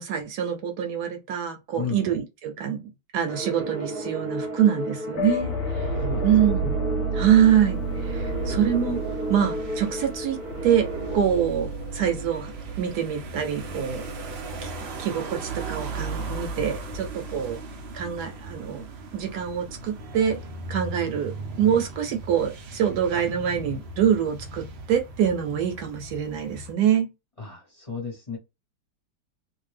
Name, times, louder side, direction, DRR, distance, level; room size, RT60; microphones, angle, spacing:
voice 1, 0.0-2.8 3.1-5.9 6.2-6.7 7.2-9.0 9.3-10.4 10.6-10.9 11.1-12.5 12.8-14.0 14.6-14.7 15.0-17.6 17.9-18.9 19.1-20.4 20.7-27.1, right 9 dB, 75° right, 1.0 m, -25 dB
voice 2, 1.7-2.1 6.0-6.8 27.4-28.4, left 5 dB, 25° left, 0.8 m, -34 dB
sound 1, 3.3-11.2, right 2 dB, 40° right, 0.7 m, -33 dB
sound 2, 5.1-17.1, right 1 dB, 75° left, 1.0 m, -32 dB
sound 3, 7.5-26.7, right 3 dB, 90° right, 0.5 m, -38 dB
2.7 x 2.4 x 3.2 m
omnidirectional pair, 1.8 m